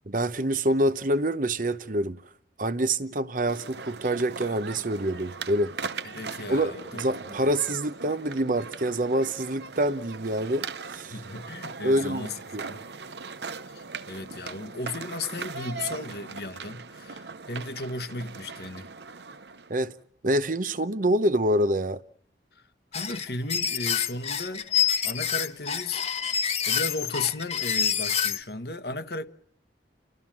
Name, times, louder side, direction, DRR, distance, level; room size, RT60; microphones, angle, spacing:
voice 1, 0.1-2.2 2.6-5.7 6.5-11.2 11.8-12.6 19.7-19.9 20.2-22.0, right 1 dB, 50° right, 0.9 m, -26 dB
sound 1, 3.5-19.9, right 5 dB, 70° right, 0.9 m, -40 dB
voice 2, 6.0-6.9 7.3-7.5 11.1-12.9 13.5-18.9 22.5-26.0 26.4-29.3, left 3 dB, 60° left, 1.2 m, -35 dB
sound 2, 22.9-28.4, left 8 dB, 35° left, 1.1 m, -27 dB
30.0 x 13.5 x 7.4 m
head